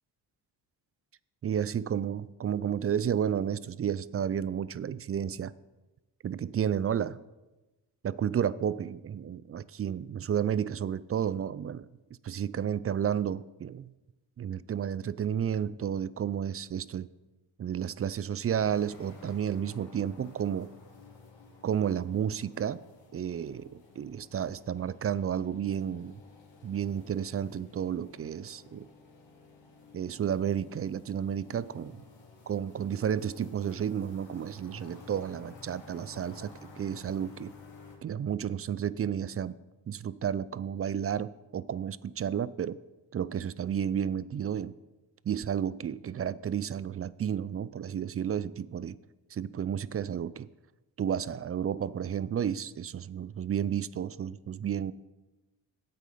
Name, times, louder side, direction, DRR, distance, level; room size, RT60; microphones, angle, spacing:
voice 1, 1.4-5.5 6.2-7.2 8.0-11.9 12.2-13.9 14.4-17.1 17.6-20.7 21.6-22.8 23.1-26.2 26.6-28.9 29.9-32.0 32.5-37.5 38.0-39.6 39.9-42.8 43.1-44.7 45.2-49.0 49.3-50.5 51.0-54.9, right 9 dB, 35° right, 19 dB, 0.4 m, -32 dB
sound 1, 18.5-38.0, left 4 dB, 70° left, 2.5 m, -53 dB
8.8 x 8.2 x 5.5 m, 1.1 s
supercardioid pair, 50°, 45 cm